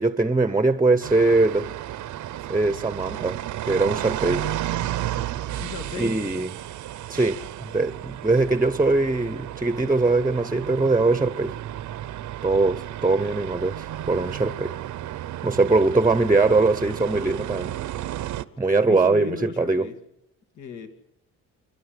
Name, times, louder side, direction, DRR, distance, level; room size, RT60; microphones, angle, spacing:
voice 1, 0.0-1.7 2.5-3.4 3.7-4.5 6.0-6.5 7.1-11.6 12.4-14.8 15.4-17.8 18.6-19.9, right 3 dB, 10° right, 0.8 m, -21 dB
sound 1, 1.0-18.4, right 13 dB, 75° right, 0.9 m, -33 dB
voice 2, 5.4-6.2 18.8-20.0 20.6-20.9, left 5 dB, 70° left, 2.4 m, -35 dB
28.5 x 12.5 x 8.3 m
cardioid pair, 90°, 30 cm